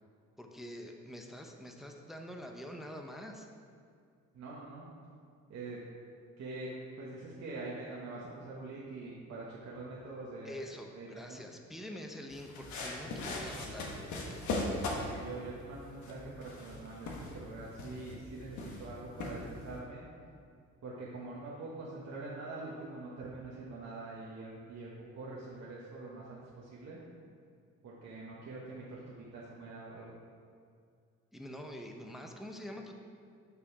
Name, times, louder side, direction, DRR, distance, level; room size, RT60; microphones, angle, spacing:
voice 1, 0.4-3.5 10.4-14.0 31.3-33.0, equal, ahead, 3 dB, 0.6 m, -45 dB
voice 2, 4.3-4.9 5.5-5.8 6.4-6.7 7.0-10.6 10.9-11.4 15.0-20.1 20.8-27.0 27.8-30.1, right 3 dB, 60° right, -6 dB, 1.2 m, -44 dB
sound 1, 12.3-19.8, left 2 dB, 75° left, 1.3 m, -40 dB
6.2 x 5.9 x 4.7 m, 2.2 s
cardioid pair, 90°, 30 cm